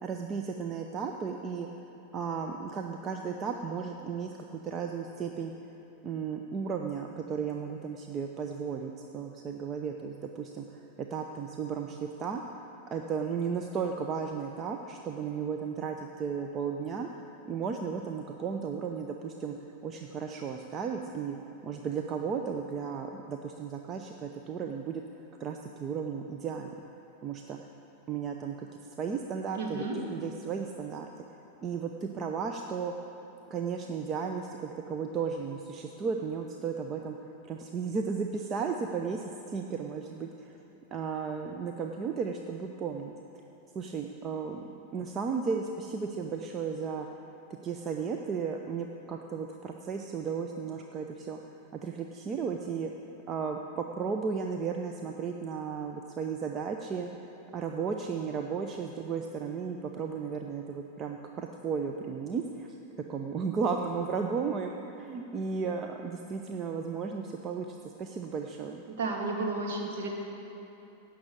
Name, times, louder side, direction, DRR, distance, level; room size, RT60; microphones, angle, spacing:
voice 1, 0.0-1.7 2.1-4.3 4.6-5.5 6.0-12.6 12.9-19.6 19.8-21.4 21.6-25.0 25.4-26.7 27.2-27.6 28.1-28.7 29.0-31.1 31.6-32.9 33.5-37.2 37.4-40.5 40.9-43.1 43.7-47.1 47.6-51.4 51.7-52.9 53.3-57.1 57.5-62.8 63.1-68.8, right 6 dB, 25° right, 3 dB, 0.7 m, -34 dB
voice 2, 29.6-30.0 68.9-70.1, right 3 dB, 55° right, -1 dB, 2.4 m, -32 dB
16.0 x 6.2 x 8.6 m, 3.0 s
figure-of-eight pair, 90°, 0 cm